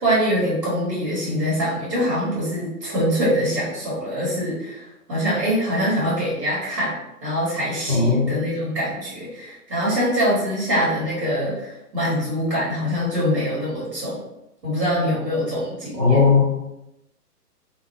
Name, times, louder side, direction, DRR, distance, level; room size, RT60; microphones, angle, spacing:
voice 1, 0.0-6.9 7.2-14.2 14.6-16.3, equal, 90° right, -8 dB, 1.5 m, -24 dB
voice 2, 7.9-8.3 15.9-16.7, left 4 dB, 15° right, -8 dB, 0.5 m, -17 dB
2.6 x 2.0 x 2.6 m, 0.88 s
figure-of-eight pair, 130°, 48 cm